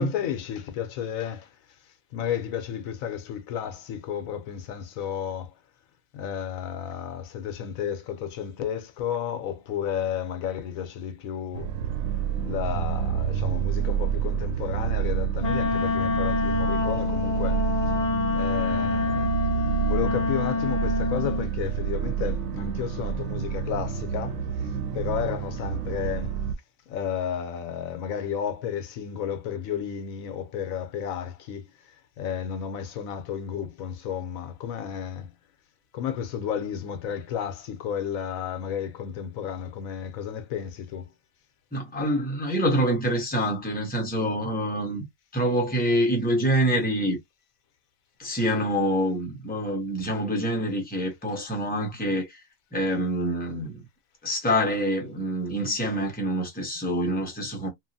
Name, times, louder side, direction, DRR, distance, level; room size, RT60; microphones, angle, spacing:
voice 1, 0.0-5.5 6.1-11.7 12.4-17.7 18.3-19.3 19.9-26.4 26.9-35.3 35.9-41.1 57.0-57.1, left 8 dB, 80° left, 1.1 m, -32 dB
sound 1, 11.5-26.5, right 9 dB, 85° right, 1.1 m, -29 dB
Wind instrument woodwind instrument, 15.4-21.5, left 5 dB, 40° left, 0.7 m, -27 dB
voice 2, 41.7-45.0 45.3-47.2 48.2-52.4 52.7-53.8 54.2-57.7, equal, 10° left, 0.8 m, -26 dB
2.8 x 2.5 x 2.5 m
omnidirectional pair, 1.4 m